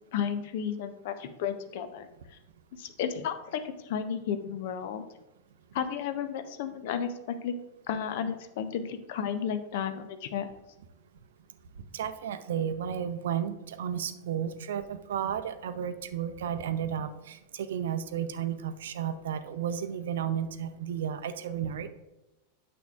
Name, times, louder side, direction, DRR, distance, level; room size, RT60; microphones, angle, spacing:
voice 1, 0.1-2.1 2.8-5.0 5.7-7.5 7.9-10.5, left 8 dB, 50° left, 10 dB, 0.7 m, -33 dB
voice 2, 11.9-21.9, right 9 dB, 60° right, 11 dB, 0.5 m, -33 dB
9.2 x 6.9 x 2.4 m, 0.97 s
figure-of-eight pair, 90°, 0 cm